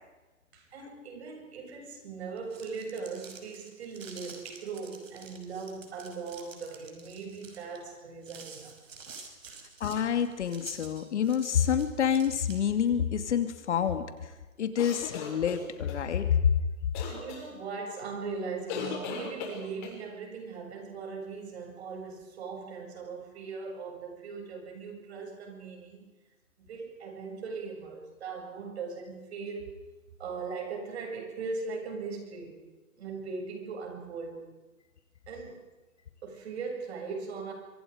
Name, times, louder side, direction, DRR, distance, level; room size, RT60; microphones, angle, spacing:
voice 1, 0.5-8.8 9.5-9.6 17.1-26.1 26.6-29.7 30.2-32.6 33.0-34.4 35.3-35.7 36.2-37.5, right 4 dB, 50° right, 3 dB, 7.5 m, -39 dB
sound 1, 2.4-12.9, right 5 dB, 65° right, 5.6 m, -49 dB
voice 2, 9.8-14.3 14.6-16.5, left 8 dB, 55° left, 8 dB, 2.6 m, -27 dB
sound 2, 14.8-16.0 16.9-17.4 18.7-20.0, left 7 dB, 35° left, 6.4 m, -37 dB
27.5 x 25.0 x 5.2 m, 1.2 s
hypercardioid pair, 155°, 42 cm